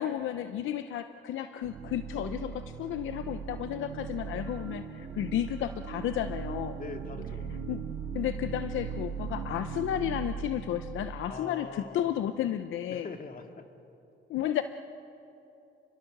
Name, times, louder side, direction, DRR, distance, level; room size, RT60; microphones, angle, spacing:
voice 1, 0.0-6.8 7.7-7.8 8.1-13.1 14.3-14.6, left 11 dB, 80° left, 10 dB, 0.8 m, -32 dB
sound 1, 1.6-11.5, right 6 dB, 90° right, 1.9 m, -39 dB
voice 2, 6.7-7.5 11.2-12.1 12.9-13.6, left 4 dB, 45° left, 4 dB, 2.3 m, -42 dB
28.5 x 22.0 x 6.7 m, 2.8 s
cardioid pair, 90°, 20 cm